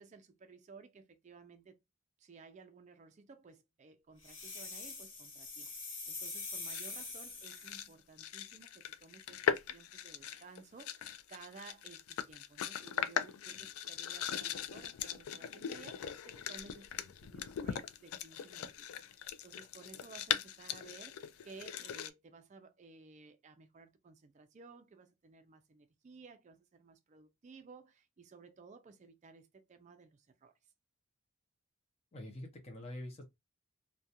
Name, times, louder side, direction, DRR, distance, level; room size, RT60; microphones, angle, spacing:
voice 1, 0.0-1.8 2.2-18.9 19.1-30.5, right 4 dB, 35° right, 0.3 m, -56 dB
sound 1, 4.2-7.9, left 3 dB, 60° left, 1.2 m, -44 dB
sound 2, 6.7-7.0 7.4-7.9 8.2-22.1, left 8 dB, 80° left, 0.3 m, -40 dB
voice 2, 32.1-33.3, left 1 dB, 30° left, 0.6 m, -45 dB
2.3 x 2.2 x 2.7 m
head